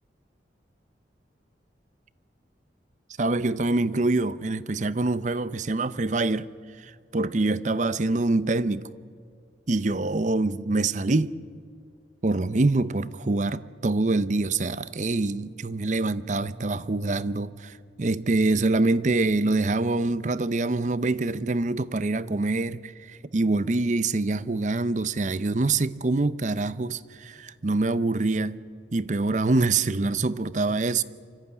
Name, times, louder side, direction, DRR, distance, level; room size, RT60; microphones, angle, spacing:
voice 1, 3.2-6.5 6.8-8.9 9.7-11.3 12.2-28.6 28.9-31.0, right 2 dB, 40° right, 0.6 m, -25 dB
25.0 x 14.0 x 9.7 m
head